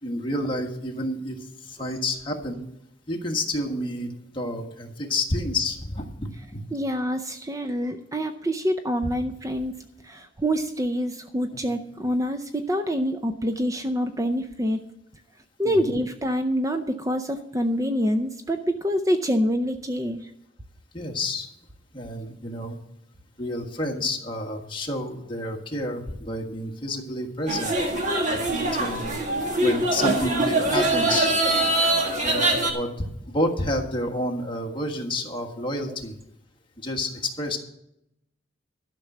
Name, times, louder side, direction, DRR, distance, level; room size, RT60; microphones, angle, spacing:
voice 1, 0.0-2.6 3.1-6.6 9.0-9.1 15.6-16.0 20.9-21.5 21.9-22.8 23.4-27.7 28.3-29.2 29.6-31.3 32.2-36.1 36.8-37.6, left 1 dB, 25° left, 2 dB, 1.5 m, -29 dB
voice 2, 6.7-9.7 10.0-14.8 15.6-20.3, equal, 20° right, 7 dB, 0.5 m, -26 dB
sound 1, 27.5-32.7, right 2 dB, 40° right, 1.8 m, -23 dB
12.0 x 6.0 x 7.8 m, 0.80 s
head